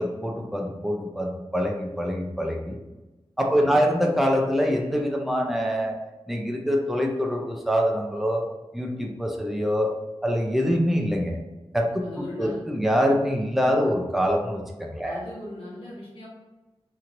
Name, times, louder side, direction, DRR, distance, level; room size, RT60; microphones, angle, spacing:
voice 1, 0.0-2.8 3.4-6.0 6.3-8.4 8.7-9.9 10.2-11.4 11.7-11.9 12.2-15.2, equal, ahead, 0 dB, 0.5 m, -24 dB
voice 2, 3.5-3.9 12.0-12.6 15.0-16.3, left 1 dB, 80° left, -6 dB, 1.3 m, -39 dB
3.0 x 2.8 x 2.5 m, 1.1 s
wide cardioid pair, 70°, 10 cm